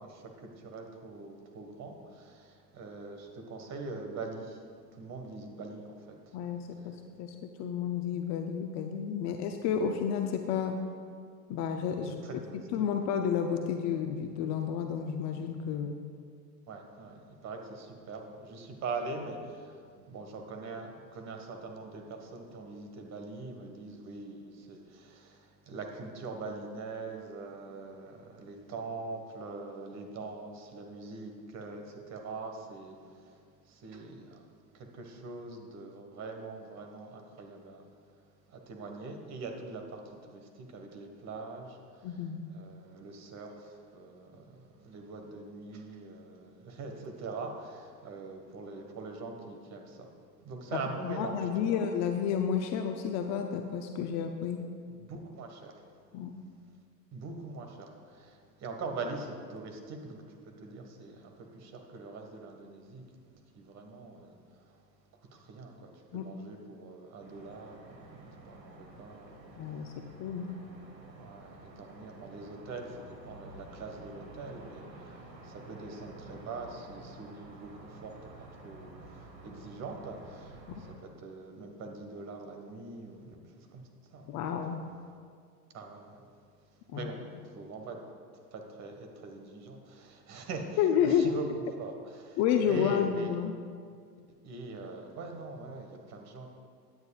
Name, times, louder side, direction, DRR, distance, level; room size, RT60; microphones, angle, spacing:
voice 1, 0.0-6.4 6.8-7.1 12.0-12.8 16.7-34.5 34.7-42.2 42.5-51.8 55.0-55.8 57.1-64.9 65.2-70.2 71.0-84.4 85.7-86.3 86.6-87.2 87.4-88.0 88.3-91.4 91.8-93.3 94.4-96.5, right 3 dB, 30° right, 3 dB, 1.6 m, -43 dB
voice 2, 6.3-10.8 11.5-12.1 12.7-16.0 42.0-42.4 50.7-54.6 56.1-56.3 66.1-66.3 69.6-69.9 70.2-70.5 80.7-80.8 84.3-84.8 86.9-87.1 90.8-91.3 92.4-93.5, left 8 dB, 35° left, 5 dB, 0.6 m, -31 dB
sound 1, 67.2-81.0, right 2 dB, 85° right, 2.0 m, -51 dB
16.5 x 9.7 x 2.4 m, 2.1 s
hypercardioid pair, 100°, 50 cm